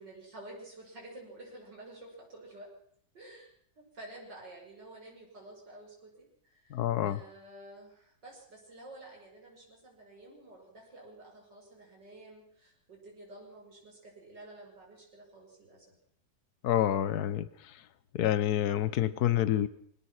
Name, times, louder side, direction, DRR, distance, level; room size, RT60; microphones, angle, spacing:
voice 1, 0.0-2.7 3.1-16.0, right 1 dB, 75° right, -1 dB, 6.1 m, -51 dB
voice 2, 6.7-7.2 16.6-17.5 18.1-19.7, left 11 dB, 65° left, 16 dB, 1.5 m, -27 dB
24.0 x 18.5 x 6.1 m, 0.65 s
omnidirectional pair, 1.9 m